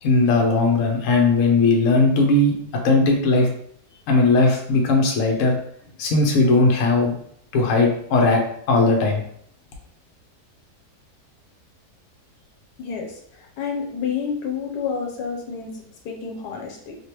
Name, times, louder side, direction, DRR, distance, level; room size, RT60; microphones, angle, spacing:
voice 1, 0.0-2.5 2.8-3.5 4.1-5.5 6.0-7.1 7.5-8.4 8.7-9.2, left 3 dB, 60° left, 1 dB, 1.0 m, -18 dB
voice 2, 12.8-13.2 13.6-16.9, left 6 dB, 85° left, 1 dB, 1.3 m, -29 dB
3.2 x 2.8 x 2.9 m, 0.65 s
omnidirectional pair, 1.7 m